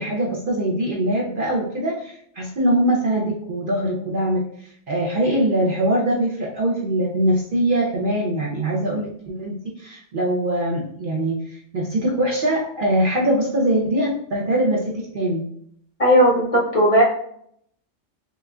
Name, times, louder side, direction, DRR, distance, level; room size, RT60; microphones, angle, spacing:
voice 1, 0.0-15.4, right 1 dB, 50° right, -3 dB, 0.8 m, -22 dB
voice 2, 16.0-17.0, equal, 35° left, -3 dB, 0.6 m, -16 dB
6.2 x 2.5 x 2.3 m, 0.69 s
omnidirectional pair, 1.3 m